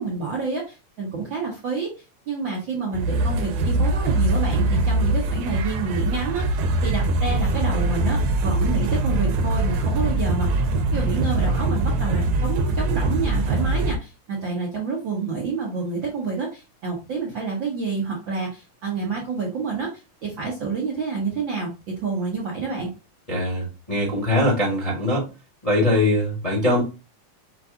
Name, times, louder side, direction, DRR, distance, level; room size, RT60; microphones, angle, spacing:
voice 1, 0.0-10.6 10.9-22.9, right 4 dB, 60° right, -3 dB, 1.3 m, -28 dB
sound 1, 2.9-14.0, right 2 dB, 85° right, 2.1 m, -22 dB
voice 2, 23.3-25.2 25.6-26.8, left 1 dB, 20° left, -4 dB, 1.0 m, -22 dB
6.0 x 2.5 x 3.6 m, 0.30 s
omnidirectional pair, 3.6 m